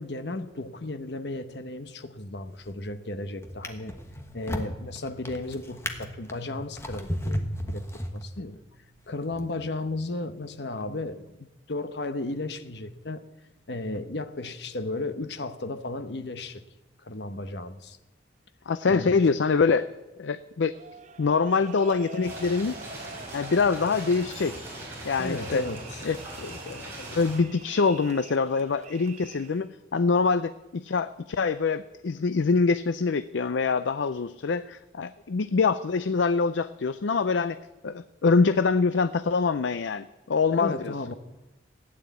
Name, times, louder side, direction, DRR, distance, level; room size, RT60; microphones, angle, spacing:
voice 1, 0.0-4.0 4.3-7.8 8.1-8.6 9.1-13.2 13.7-16.6 17.0-18.0 18.9-19.3 25.2-26.0 40.6-41.1, left 2 dB, 70° left, 1.0 m, -34 dB
Drawer open or close, 2.5-2.9 3.4-8.6 9.3-9.5, equal, 15° left, 1.2 m, -34 dB
voice 2, 18.7-19.9 20.2-20.8 21.2-22.8 23.3-24.7 25.0-25.7 26.0-37.6 37.8-40.9, left 4 dB, 85° left, 0.5 m, -25 dB
sound 1, 20.7-29.7, right 4 dB, 40° right, 0.8 m, -46 dB
sound 2, 22.2-27.4, right 1 dB, 15° right, 4.9 m, -40 dB
16.5 x 9.8 x 8.3 m
head